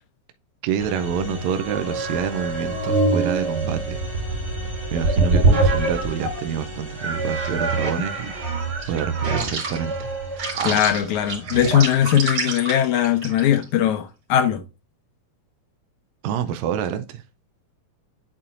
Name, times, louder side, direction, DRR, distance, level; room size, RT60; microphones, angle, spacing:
voice 1, 0.6-4.0 4.9-8.3 8.9-10.9 16.2-17.2, right 8 dB, 80° right, 1.6 m, -28 dB
sound 1, 0.8-11.6, left 1 dB, 25° right, 2.7 m, -37 dB
sound 2, 1.5-6.4 7.0-13.6, right 3 dB, 45° right, 3.2 m, -24 dB
voice 2, 10.7-14.6, left 10 dB, 80° left, 1.9 m, -20 dB
10.0 x 4.2 x 2.5 m
omnidirectional pair, 3.5 m